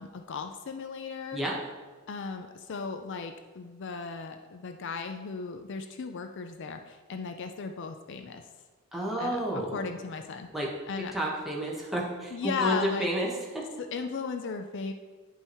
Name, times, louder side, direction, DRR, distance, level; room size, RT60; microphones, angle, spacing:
voice 1, 0.0-1.4 2.1-8.5 9.2-10.5 10.9-11.1 12.3-13.1 13.8-14.9, left 5 dB, 60° left, 6 dB, 0.5 m, -36 dB
voice 2, 8.9-9.8 10.5-10.7 11.1-13.3 13.5-13.7, equal, ahead, -4 dB, 1.2 m, -30 dB
10.0 x 5.5 x 3.0 m, 1.3 s
head